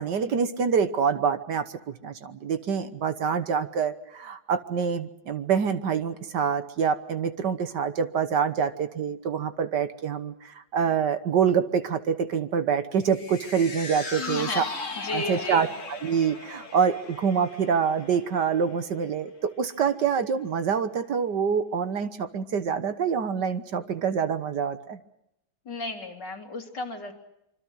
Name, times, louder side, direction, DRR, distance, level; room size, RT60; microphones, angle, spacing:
voice 1, 0.0-14.6 15.1-25.0, right 6 dB, 65° right, 11 dB, 1.7 m, -26 dB
sound 1, 13.0-19.5 19.8-19.9, left 3 dB, 40° left, 2.5 m, -38 dB
voice 2, 14.2-14.7 15.0-15.7 25.7-27.1, left 3 dB, 60° left, 2 dB, 3.6 m, -33 dB
26.0 x 25.0 x 6.3 m, 0.82 s
omnidirectional pair, 2.1 m